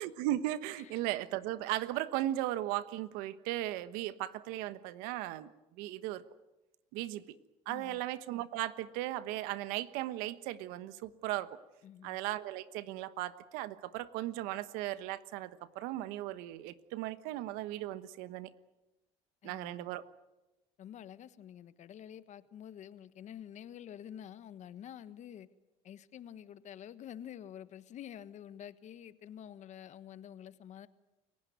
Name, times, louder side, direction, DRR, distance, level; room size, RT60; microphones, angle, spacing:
voice 1, 0.0-5.5 5.8-6.2 6.9-7.2 7.7-11.5 12.0-18.5 19.4-20.0, right 15 dB, 85° right, 14 dB, 1.2 m, -37 dB
voice 2, 7.7-8.0 11.8-12.2 19.4-20.0 20.8-25.5 25.8-30.9, left 10 dB, 55° left, 14 dB, 1.4 m, -48 dB
29.0 x 16.5 x 9.4 m, 1.0 s
supercardioid pair, 90°, 15 cm